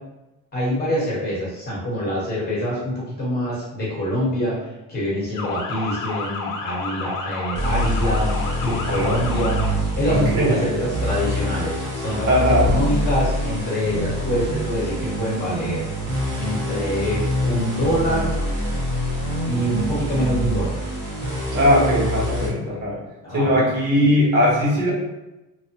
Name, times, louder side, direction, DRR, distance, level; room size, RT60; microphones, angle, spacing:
voice 1, 0.5-4.6 4.9-8.3 8.6-9.6 10.0-15.8 16.3-18.3 19.4-20.7 23.2-23.6 24.0-24.1, equal, 25° left, -7 dB, 1.0 m, -25 dB
Motor vehicle (road) / Siren, 5.3-9.7, left 4 dB, 65° left, 0.6 m, -30 dB
sound 1, 7.5-22.5, equal, 30° right, 0.8 m, -25 dB
voice 2, 8.9-9.2 10.1-10.6 12.3-12.7 21.5-23.0 23.3-24.9, equal, 75° right, -6 dB, 1.3 m, -19 dB
3.0 x 2.1 x 2.8 m, 0.99 s
cardioid pair, 170°, 35 cm